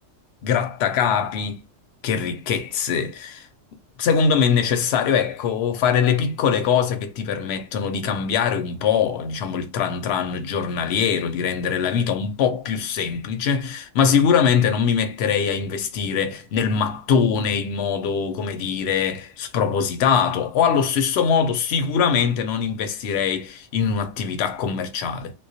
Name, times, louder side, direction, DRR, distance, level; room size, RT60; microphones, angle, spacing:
voice 1, 0.4-1.6 2.0-3.5 4.0-25.3, left 7 dB, 65° left, 0.7 m, -22 dB
2.3 x 2.1 x 2.6 m
omnidirectional pair, 1.3 m